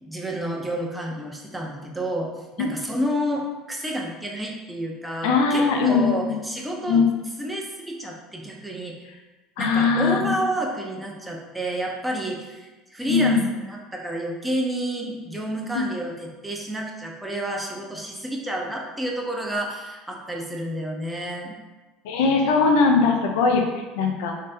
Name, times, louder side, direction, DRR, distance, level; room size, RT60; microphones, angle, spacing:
voice 1, 0.0-2.3 2.6-7.0 7.4-9.0 9.6-21.6, right 1 dB, 10° right, -1 dB, 0.7 m, -30 dB
voice 2, 5.2-6.4 6.9-7.1 9.6-10.4 13.0-13.5 15.7-15.8 22.0-24.3, left 4 dB, 75° left, 3 dB, 0.5 m, -20 dB
3.1 x 2.8 x 3.5 m, 1.2 s
hypercardioid pair, 85°, 0 cm